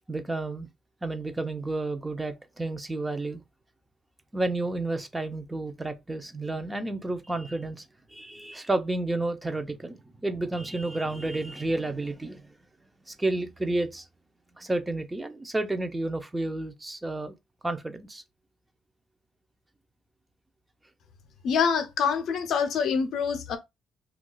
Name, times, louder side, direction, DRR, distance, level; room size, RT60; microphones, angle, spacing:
voice 1, 0.1-0.7 1.0-3.4 4.3-7.8 8.1-12.4 13.1-14.1 14.6-17.3 17.6-18.2, right 2 dB, 15° right, 0.5 m, -31 dB
voice 2, 21.4-23.6, left 6 dB, 75° left, 0.6 m, -25 dB
2.3 x 2.3 x 3.8 m
cardioid pair, 90°, 0 cm